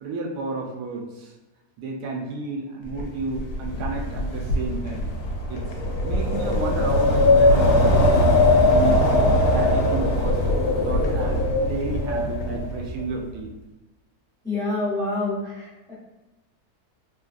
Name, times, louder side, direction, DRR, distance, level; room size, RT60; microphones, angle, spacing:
voice 1, 0.0-1.3 1.8-5.0 5.5-5.7 6.0-10.4 10.8-13.5, right 3 dB, 90° right, 0 dB, 1.2 m, -32 dB
Wind, 3.0-13.1, left 1 dB, 80° left, 1.1 m, -20 dB
voice 2, 14.4-15.9, left 2 dB, 5° left, -9 dB, 0.9 m, -27 dB
3.7 x 2.2 x 2.4 m, 1.1 s
omnidirectional pair, 1.7 m